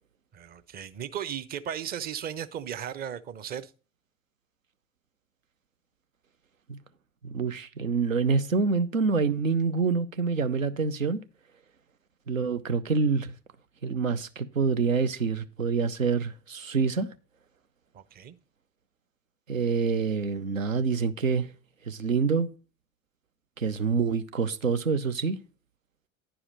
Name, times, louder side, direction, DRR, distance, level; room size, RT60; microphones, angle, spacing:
voice 1, 0.3-3.7 17.9-18.4, right 9 dB, 25° right, 0.6 m, -36 dB
voice 2, 7.2-11.2 12.3-13.3 13.8-17.1 19.5-21.5 21.9-22.5 23.6-25.4, right 5 dB, 85° right, 0.7 m, -26 dB
10.0 x 4.9 x 5.1 m
figure-of-eight pair, 70°, 39 cm